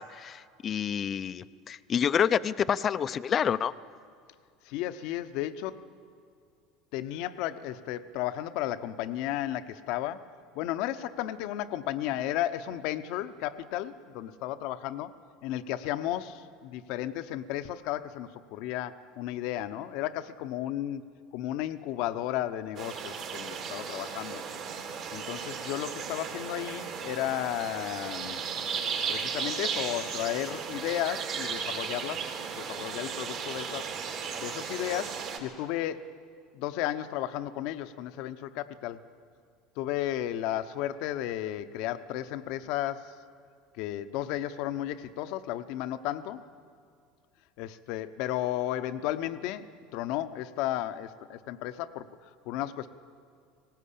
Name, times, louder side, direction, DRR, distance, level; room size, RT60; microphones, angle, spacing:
voice 1, 0.0-3.7, left 8 dB, 40° left, 16 dB, 0.6 m, -28 dB
voice 2, 4.6-5.8 6.9-15.1 15.4-24.4 25.1-28.5 29.1-33.9 34.4-36.2 36.5-39.0 39.8-43.2 43.7-46.4 47.6-52.9, left 12 dB, 65° left, 12 dB, 0.9 m, -34 dB
sound 1, 22.8-35.4, right 6 dB, 55° right, 3.5 m, -35 dB
19.5 x 17.5 x 8.5 m, 2.2 s
hypercardioid pair, 85°, 0 cm